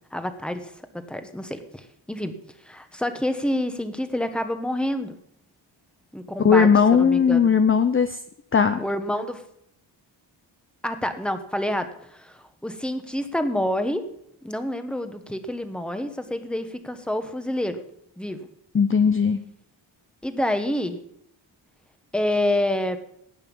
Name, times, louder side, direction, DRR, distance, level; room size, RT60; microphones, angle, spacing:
voice 1, 0.1-0.7 1.1-2.3 2.6-5.2 6.1-7.5 8.8-9.4 10.8-14.0 14.4-17.8 18.2-18.4 20.2-21.0 22.1-23.0, left 1 dB, ahead, 8 dB, 1.1 m, -28 dB
voice 2, 6.4-8.2 8.5-8.8 18.7-19.4, left 6 dB, 25° left, 9 dB, 0.6 m, -18 dB
18.0 x 9.2 x 5.4 m, 0.73 s
wide cardioid pair, 160°, 48 cm